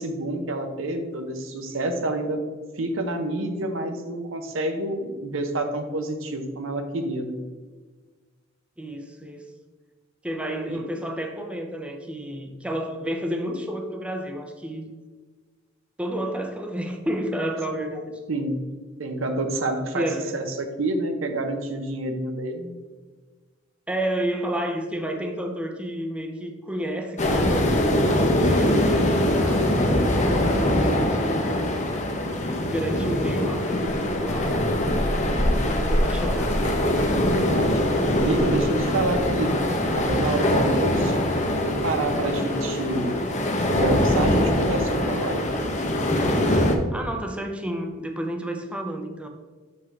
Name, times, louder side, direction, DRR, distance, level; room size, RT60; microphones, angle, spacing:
voice 1, 0.0-2.4 2.8-7.4 10.7-10.8 18.3-18.6 19.0-20.1 20.3-22.7 37.2-37.8 38.2-39.6 39.9-43.2 43.7-45.5, right 2 dB, 75° right, 6 dB, 0.7 m, -28 dB
voice 2, 8.8-9.5 10.2-14.8 16.0-18.2 19.9-20.3 23.9-31.5 32.7-34.7 35.7-36.7 46.9-49.3, right 1 dB, 5° right, 3 dB, 0.5 m, -31 dB
sound 1, 27.2-46.8, left 1 dB, 35° left, 0.7 m, -23 dB
6.1 x 5.6 x 3.3 m, 1.4 s
head